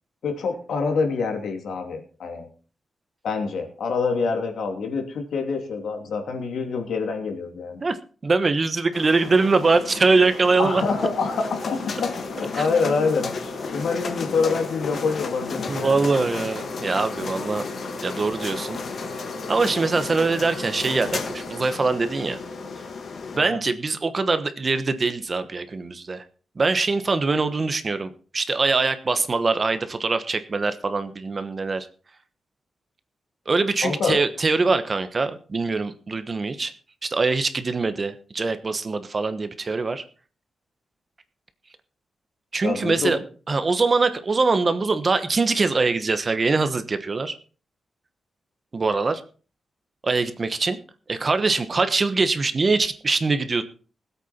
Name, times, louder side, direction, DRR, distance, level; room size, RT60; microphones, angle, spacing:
voice 1, 0.2-2.5 3.2-7.8 10.6-16.1 23.4-23.6 33.8-34.2 42.6-43.2, left 4 dB, 85° left, 4 dB, 2.9 m, -26 dB
voice 2, 8.2-10.8 15.7-17.6 18.0-18.8 19.5-22.4 23.3-26.2 26.6-31.9 33.5-36.7 37.0-40.0 42.5-43.2 43.5-47.3 48.7-49.2 50.0-50.8 51.1-53.6, right 3 dB, 30° right, 10 dB, 1.1 m, -23 dB
sound 1, 8.9-23.4, left 5 dB, 50° left, 1.6 m, -33 dB
Wind instrument woodwind instrument, 9.8-23.2, right 7 dB, 80° right, 1.9 m, -44 dB
20.0 x 8.3 x 4.4 m, 0.38 s
wide cardioid pair, 160°, 0 cm